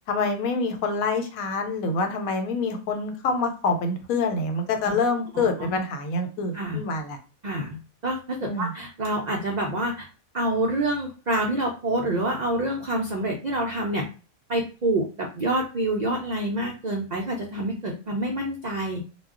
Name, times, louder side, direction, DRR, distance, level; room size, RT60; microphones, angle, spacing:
voice 1, 0.1-7.2 8.4-8.7, left 3 dB, 85° left, 6 dB, 1.1 m, -26 dB
voice 2, 5.3-5.8 6.5-6.8 7.4-10.1 10.3-14.1 14.5-19.0, right 1 dB, 75° right, -1 dB, 0.4 m, -27 dB
2.3 x 2.1 x 3.6 m, 0.35 s
omnidirectional pair, 1.4 m